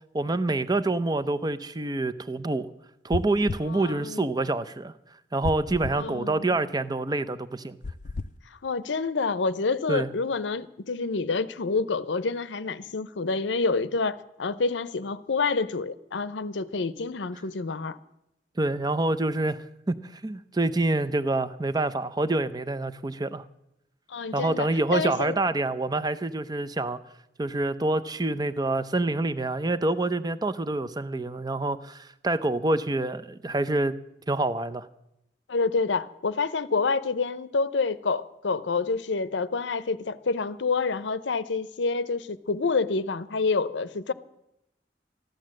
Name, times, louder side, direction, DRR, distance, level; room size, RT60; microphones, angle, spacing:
voice 1, 0.1-2.7 3.0-4.9 5.3-7.8 9.9-10.1 18.6-19.6 19.9-23.4 24.3-27.0 27.4-33.9 34.3-34.9, right 2 dB, 20° right, 0.6 m, -27 dB
sound 1, 3.1-3.7 5.4-6.0 7.8-8.3, left 3 dB, 45° left, 0.4 m, -32 dB
voice 2, 3.7-4.2 5.9-6.6 8.6-18.0 24.1-25.4 35.5-44.1, left 4 dB, 85° left, 0.7 m, -28 dB
14.5 x 11.0 x 7.5 m
head